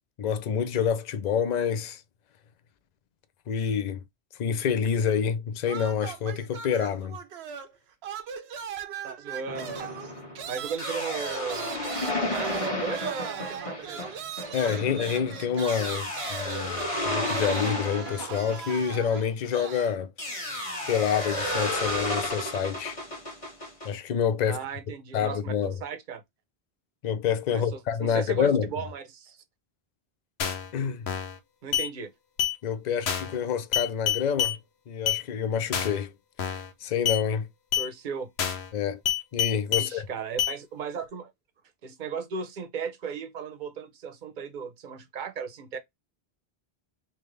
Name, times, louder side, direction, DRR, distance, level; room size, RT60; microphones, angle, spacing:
voice 1, 0.2-2.0 3.5-4.0 4.4-7.2 14.5-20.4 20.9-23.0 23.8-24.6 25.1-25.8 27.0-28.7 30.7-31.1 32.6-34.6 34.9-36.1 36.4-37.5 38.7-39.0 39.3-40.1, left 7 dB, 50° left, 0.6 m, -27 dB
sound 1, 5.6-7.8 8.0-20.0, right 8 dB, 85° right, 0.9 m, -39 dB
voice 2, 9.0-10.0 10.5-11.8 12.1-14.1 14.5-14.8 24.5-26.2 27.5-29.4 31.6-32.1 37.8-38.3 39.7-41.3 41.8-45.8, right 6 dB, 55° right, 0.8 m, -36 dB
sound 2, 9.5-19.6 20.2-23.9, left 1 dB, 30° left, 1.3 m, -32 dB
sound 3, 30.4-30.7 31.1-31.4 31.7-31.9 32.4-32.6 33.1-33.4 33.7-34.6 35.1-35.2 35.7-36.0 36.4-36.7 37.0-37.2 37.7-37.9 38.4-38.7 39.0-39.9 40.4-40.5, left 9 dB, 80° left, 1.1 m, -27 dB
3.5 x 2.9 x 3.2 m
omnidirectional pair, 1.1 m